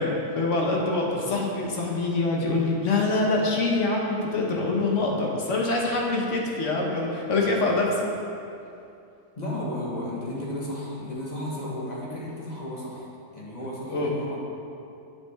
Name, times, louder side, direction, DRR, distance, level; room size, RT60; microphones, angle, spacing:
voice 1, 0.0-8.1 13.9-14.1, left 2 dB, 55° left, -1 dB, 1.2 m, -25 dB
voice 2, 9.4-13.1 13.3-14.4, left 1 dB, 30° left, -5 dB, 1.2 m, -34 dB
7.7 x 7.3 x 3.4 m, 2.7 s
omnidirectional pair, 1.7 m